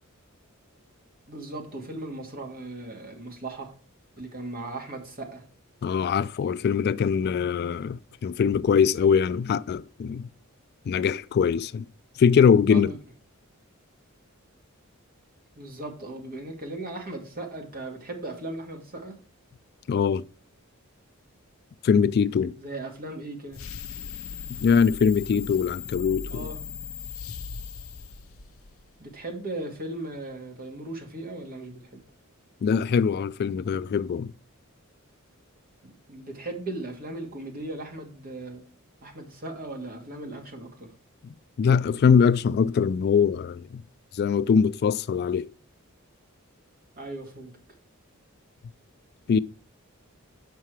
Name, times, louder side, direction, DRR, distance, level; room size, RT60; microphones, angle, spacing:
voice 1, 1.3-3.7 4.2-5.4 12.7-13.0 15.6-19.2 22.6-23.6 26.3-26.6 29.0-32.0 35.8-38.6 39.0-40.9 47.0-47.6, right 2 dB, 45° right, 2.3 m, -37 dB
voice 2, 5.8-10.3 10.9-11.8 12.2-12.9 19.9-20.2 21.8-22.5 24.5-26.5 32.6-34.3 41.2-43.8 44.1-45.5 49.3-49.4, left 6 dB, 50° left, 0.3 m, -22 dB
sound 1, 23.5-28.9, left 6 dB, 70° left, 0.8 m, -38 dB
7.4 x 5.6 x 4.7 m
head